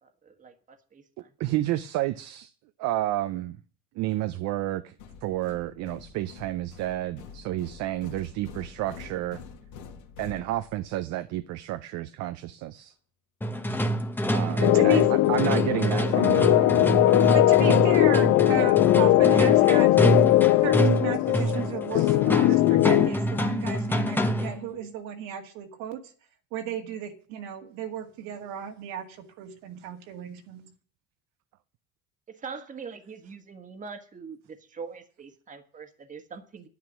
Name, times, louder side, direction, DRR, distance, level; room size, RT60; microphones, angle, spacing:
voice 1, 0.0-1.3 32.3-36.7, right 5 dB, 25° right, 1.5 m, -43 dB
voice 2, 1.4-2.5 2.8-3.6 4.0-4.9 5.2-9.4 10.2-12.9 14.3-17.4 17.7-17.8 21.9-22.1, right 15 dB, 65° right, 0.7 m, -31 dB
sound 1, 5.0-11.0, left 6 dB, 85° left, 2.2 m, -46 dB
sound 2, 13.4-24.7, right 1 dB, 5° left, 1.0 m, -27 dB
voice 3, 14.5-15.0 15.6-15.7 17.3-20.0 20.6-26.0 26.5-30.7, right 9 dB, 80° right, 2.0 m, -34 dB
sound 3, 14.6-23.1, left 16 dB, 55° left, 0.5 m, -20 dB
10.5 x 9.5 x 6.2 m
cardioid pair, 125°, 30 cm